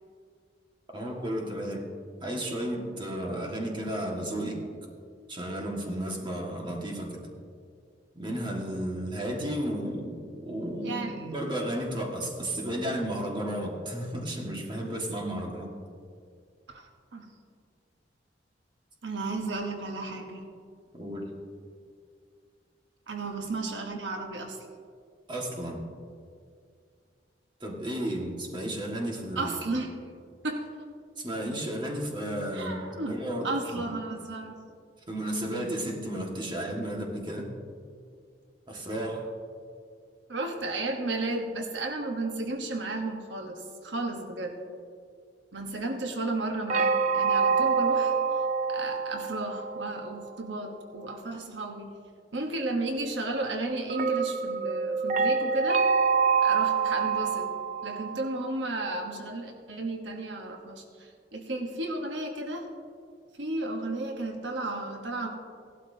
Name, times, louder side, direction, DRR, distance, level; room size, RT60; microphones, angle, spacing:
voice 1, 0.9-1.9 2.2-4.6 5.3-7.2 8.1-15.7 20.9-21.3 25.3-25.8 27.6-29.5 31.2-32.8 33.0-33.5 33.7-33.9 35.1-37.5 38.7-39.3, right 1 dB, 25° right, -1 dB, 1.7 m, -33 dB
voice 2, 10.8-11.3 11.6-11.7 16.7-17.3 19.0-20.5 23.1-24.7 29.4-29.9 30.4-30.7 32.5-33.2 33.4-34.5 40.3-44.5 45.5-48.2 48.7-51.9 52.3-55.9 56.4-57.5 57.8-62.7 63.4-65.3, right 2 dB, 80° right, 3 dB, 1.1 m, -33 dB
sound 1, 46.7-50.3 53.9-58.4, right 5 dB, 45° right, 0.5 m, -26 dB
17.0 x 12.0 x 2.7 m, 2.2 s
head